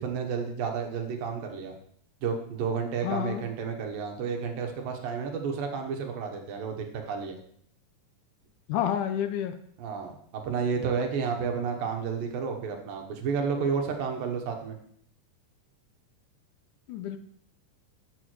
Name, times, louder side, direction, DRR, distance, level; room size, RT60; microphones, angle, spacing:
voice 1, 0.0-1.7 2.2-7.4 9.8-14.8, right 6 dB, 85° right, 3 dB, 2.8 m, -31 dB
voice 2, 3.0-3.4 8.7-9.5 16.9-17.2, left 9 dB, 80° left, 9 dB, 1.9 m, -29 dB
14.0 x 6.9 x 3.1 m, 0.64 s
omnidirectional pair, 3.9 m